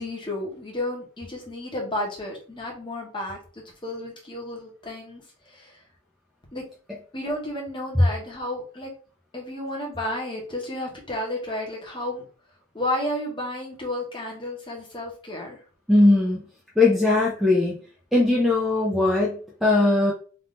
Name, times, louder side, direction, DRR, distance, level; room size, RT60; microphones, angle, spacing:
voice 1, 0.0-3.4 3.8-5.2 5.5-5.7 6.5-6.6 7.1-8.9 9.3-12.2 12.7-15.6, left 1 dB, 20° left, -1 dB, 1.2 m, -32 dB
voice 2, 15.9-16.4 16.8-17.7 18.1-20.1, left 2 dB, ahead, -3 dB, 0.5 m, -19 dB
3.6 x 2.7 x 3.8 m, 0.41 s
head